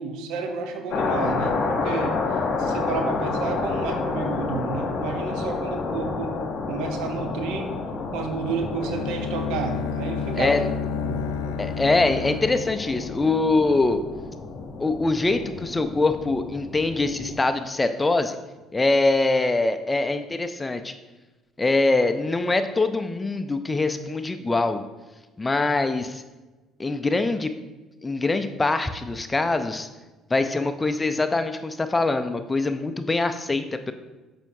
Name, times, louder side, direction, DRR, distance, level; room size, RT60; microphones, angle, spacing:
voice 1, 0.0-2.2 2.6-6.4 6.7-7.7 8.1-10.5 11.0-11.3, right 5 dB, 75° right, 4 dB, 0.8 m, -31 dB
sound 1, 0.9-17.4, left 4 dB, 65° left, 1.1 m, -30 dB
Bowed string instrument, 8.8-13.7, left 6 dB, 80° left, 0.4 m, -31 dB
voice 2, 11.6-14.0 14.8-18.4 18.7-20.9 21.6-24.8 25.4-26.2 26.8-27.5 28.0-29.9 30.3-33.9, left 3 dB, 20° left, 8 dB, 0.5 m, -23 dB
7.0 x 5.8 x 2.7 m, 1.2 s
supercardioid pair, 65°, 0 cm